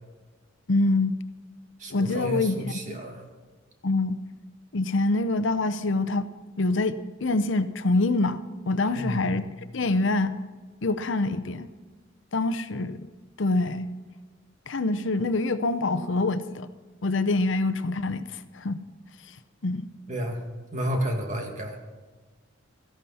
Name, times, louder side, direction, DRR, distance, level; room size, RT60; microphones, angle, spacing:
voice 1, 0.7-1.2 1.9-3.0 3.8-4.2 4.7-6.3 6.6-8.4 8.7-9.4 9.7-10.4 10.8-11.7 12.3-13.1 13.4-13.9 14.7-16.7 17.0-18.8 19.6-19.9, left 2 dB, 70° left, 12 dB, 0.7 m, -25 dB
voice 2, 1.8-3.2 8.9-9.2 20.1-20.4 20.7-21.8, equal, 40° right, 2 dB, 2.2 m, -31 dB
17.0 x 14.0 x 4.3 m, 1.3 s
head